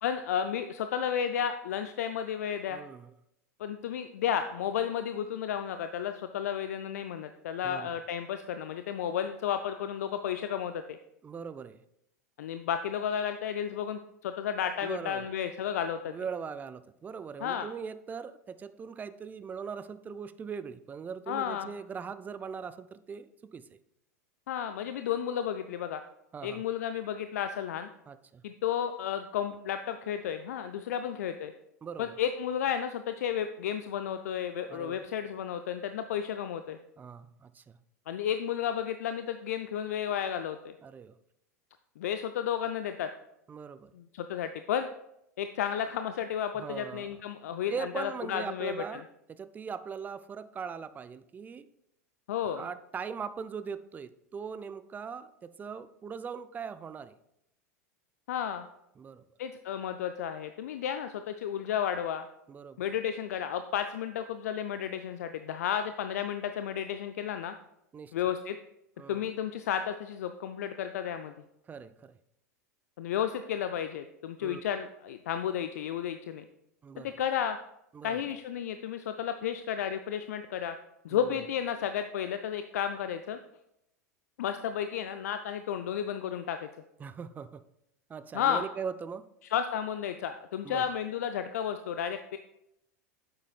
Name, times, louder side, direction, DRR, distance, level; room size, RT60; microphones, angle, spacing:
voice 1, 0.0-2.8 3.6-11.0 12.4-16.1 17.4-17.7 21.3-21.7 24.5-26.0 26.4-27.9 28.4-31.5 32.0-36.8 38.1-40.7 42.0-43.1 43.9-44.9 45.4-48.7 52.3-52.6 58.3-58.7 59.4-62.3 62.8-67.5 68.1-68.6 69.1-71.3 73.0-76.4 77.0-77.6 78.0-80.8 81.0-83.4 84.4-86.7 88.3-88.6 89.5-92.4, left 9 dB, 65° left, 9 dB, 0.4 m, -32 dB
voice 2, 2.7-3.1 7.6-7.9 11.2-11.8 14.8-15.3 16.1-23.8 26.3-26.6 28.1-28.4 31.8-32.1 34.7-35.0 37.0-37.8 40.8-41.1 43.5-43.9 46.5-47.2 47.7-49.0 49.3-51.7 52.5-57.2 59.0-59.2 62.5-62.9 67.9-68.1 69.0-69.2 71.7-72.2 74.4-74.6 76.8-77.2 77.9-78.2 81.1-81.4 87.0-87.6 88.1-89.3 90.6-90.9, right 6 dB, 20° right, 13 dB, 0.4 m, -40 dB
8.7 x 7.3 x 2.4 m, 0.80 s
figure-of-eight pair, 90°, 9 cm